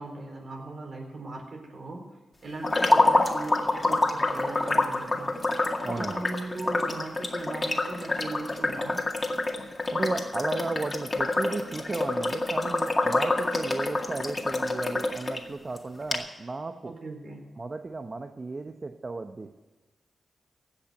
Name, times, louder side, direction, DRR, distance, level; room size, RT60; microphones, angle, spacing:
voice 1, 0.0-2.0 2.4-5.4 5.8-9.1 16.9-17.5, right 2 dB, 60° right, 1 dB, 4.0 m, -39 dB
sound 1, 2.6-15.4 15.8-15.9 16.1-16.2, left 2 dB, 35° left, 2.1 m, -27 dB
voice 2, 5.8-6.2 9.9-16.9 17.6-19.5, right 3 dB, 40° right, 6 dB, 0.9 m, -34 dB
16.5 x 6.0 x 9.4 m, 1.2 s
supercardioid pair, 45°, 0 cm